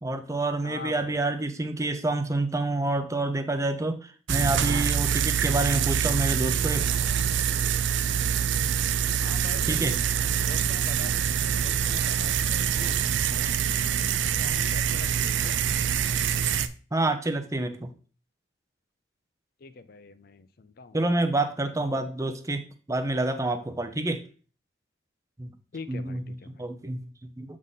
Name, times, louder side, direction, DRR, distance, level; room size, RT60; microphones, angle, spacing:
voice 1, 0.0-6.9 9.7-10.0 16.9-17.9 20.9-24.2 25.4-25.5 25.9-27.6, right 2 dB, 15° right, 8 dB, 0.5 m, -28 dB
voice 2, 0.6-1.2 9.2-10.0 10.5-13.0 13.3-15.6 19.6-21.0 25.7-26.3, left 4 dB, 50° left, 13 dB, 0.5 m, -44 dB
sound 1, 4.3-16.7, right 8 dB, 70° right, 0.4 m, -25 dB
7.8 x 3.7 x 4.0 m, 0.40 s
head